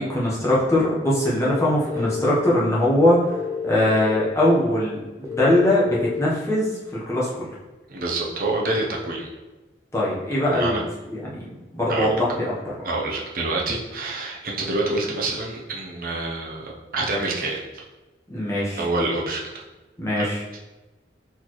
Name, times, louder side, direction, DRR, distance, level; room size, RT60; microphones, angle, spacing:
voice 1, 0.0-3.4 3.6-7.5 9.9-12.5 18.3-18.8 20.0-20.4, left 1 dB, 15° left, -6 dB, 1.0 m, -21 dB
sound 1, 1.4-2.3 3.3-4.3 5.2-6.2, left 6 dB, 20° right, 0.5 m, -30 dB
voice 2, 7.9-9.3 10.5-10.8 11.9-12.2 12.8-17.8 18.8-19.6 20.2-20.3 20.5-20.6, right 2 dB, 55° right, -2 dB, 0.7 m, -27 dB
4.2 x 4.1 x 3.1 m, 1.1 s
head